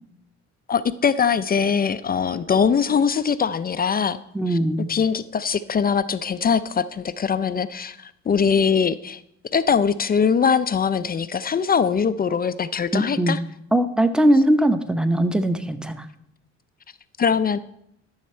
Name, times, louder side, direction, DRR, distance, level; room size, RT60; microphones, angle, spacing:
voice 1, 0.7-4.2 4.5-4.6 4.9-9.2 9.5-13.4 17.2-17.6, left 6 dB, 30° left, 14 dB, 0.4 m, -22 dB
voice 2, 4.3-4.9 12.9-13.4 13.7-16.1, right 1 dB, 5° right, 10 dB, 0.8 m, -20 dB
12.5 x 6.5 x 4.4 m, 0.76 s
cardioid pair, 90°, 30 cm